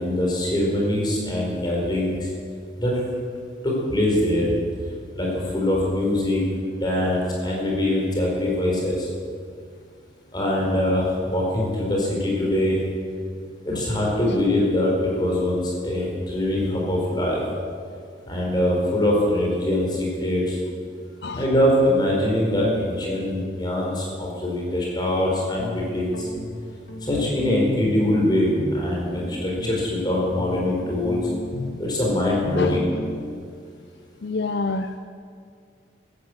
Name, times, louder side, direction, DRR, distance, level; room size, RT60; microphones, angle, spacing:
voice 1, 0.0-2.1 2.8-2.9 3.6-4.5 5.1-5.3 5.5-6.4 6.8-9.1 10.3-12.8 13.6-17.4 18.3-20.6 21.3-26.3 27.1-31.2 31.9-32.9, left 1 dB, 20° left, -3 dB, 4.5 m, -23 dB
Guitar, 25.6-33.3, left 1 dB, 75° left, 2.0 m, -34 dB
voice 2, 34.2-35.0, left 3 dB, 60° left, 8 dB, 0.5 m, -26 dB
15.5 x 12.0 x 7.9 m, 2.2 s
head